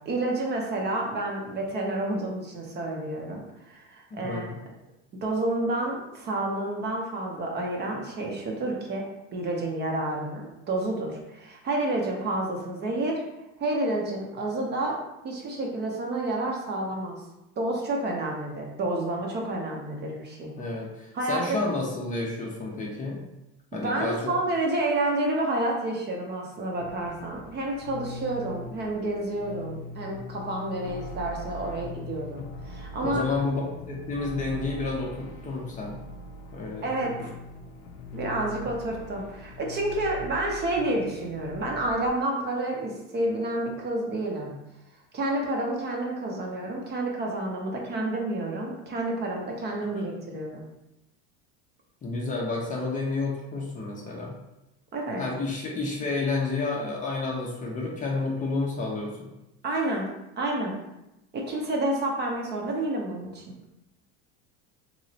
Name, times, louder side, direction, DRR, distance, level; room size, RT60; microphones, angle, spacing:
voice 1, 0.1-4.5 5.2-9.0 9.3-10.4 10.7-13.2 13.6-15.0 15.2-17.2 17.6-20.5 21.1-21.6 23.7-33.2 36.8-37.3 38.1-44.5 45.1-50.6 54.9-55.2 59.6-60.1 60.4-60.8 61.3-63.4, right 2 dB, 30° right, -1 dB, 0.6 m, -29 dB
voice 2, 4.1-4.6 20.6-23.2 23.7-24.3 33.0-33.6 33.9-36.0 36.5-36.9 52.0-54.3 55.2-59.3, left 3 dB, 25° left, -2 dB, 0.5 m, -30 dB
sound 1, 26.8-42.1, left 1 dB, 70° left, 0.6 m, -41 dB
3.0 x 3.0 x 2.7 m, 0.91 s
supercardioid pair, 135°, 34 cm